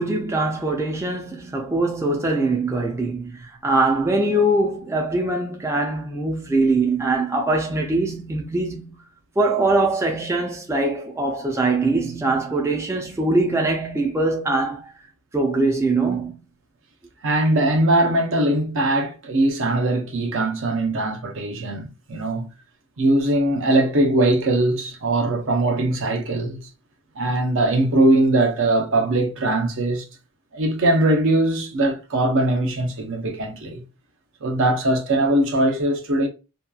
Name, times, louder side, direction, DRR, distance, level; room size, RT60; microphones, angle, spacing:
voice 1, 0.0-9.0 9.4-14.9 15.3-16.4, right 2 dB, 15° right, 0.4 m, -22 dB
voice 2, 17.2-22.5 23.0-26.7 27.2-30.1 30.5-33.8 34.4-36.3, right 1 dB, 65° right, 0.6 m, -21 dB
2.8 x 2.2 x 2.3 m
head